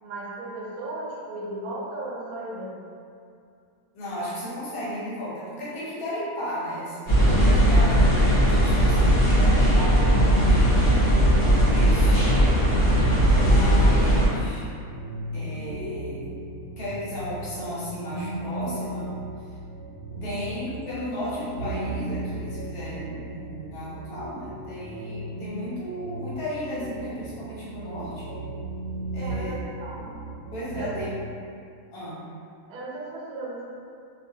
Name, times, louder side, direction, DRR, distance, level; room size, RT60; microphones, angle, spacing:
voice 1, 0.0-2.8 14.0-14.2 29.2-30.2 30.8-31.1 32.7-33.7, right 2 dB, 80° right, -5 dB, 1.1 m, -36 dB
voice 2, 3.9-10.8 11.4-12.3 13.4-14.7 15.3-16.3 16.8-19.1 19.5-19.6 20.2-28.4 29.1-29.6 30.5-31.2 31.9-32.2, equal, 90° left, -8 dB, 1.3 m, -34 dB
sound 1, 7.1-14.3, equal, 45° left, 1.0 m, -18 dB
sound 2, 14.0-31.1, right 1 dB, 55° right, 0.9 m, -36 dB
2.7 x 2.2 x 2.7 m, 2.4 s
omnidirectional pair, 1.5 m